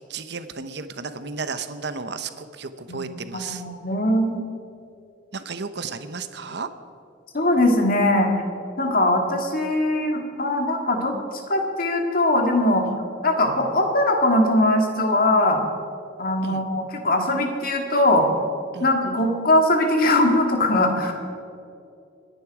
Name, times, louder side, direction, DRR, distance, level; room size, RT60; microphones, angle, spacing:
voice 1, 0.0-3.6 5.3-6.7 12.9-13.0 16.4-16.6 18.7-18.9, right 4 dB, 65° right, 10 dB, 0.9 m, -33 dB
voice 2, 3.3-4.4 7.3-8.3 8.8-11.1 11.5-12.9 13.2-15.6 16.2-18.3 18.8-21.1, left 1 dB, 50° left, 3 dB, 2.3 m, -21 dB
27.0 x 10.5 x 4.9 m, 2.5 s
head